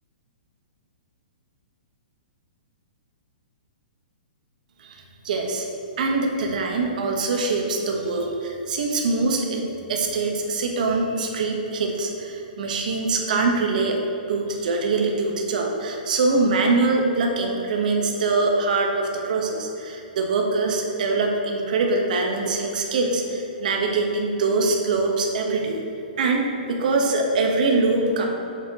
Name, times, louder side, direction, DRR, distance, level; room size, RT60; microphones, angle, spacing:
voice 1, 5.2-5.7 6.0-9.6 9.9-14.0 14.3-25.8 26.2-28.3, right 3 dB, 55° right, 1 dB, 1.1 m, -23 dB
7.8 x 7.2 x 3.0 m, 2.8 s
hypercardioid pair, 170°, 5 cm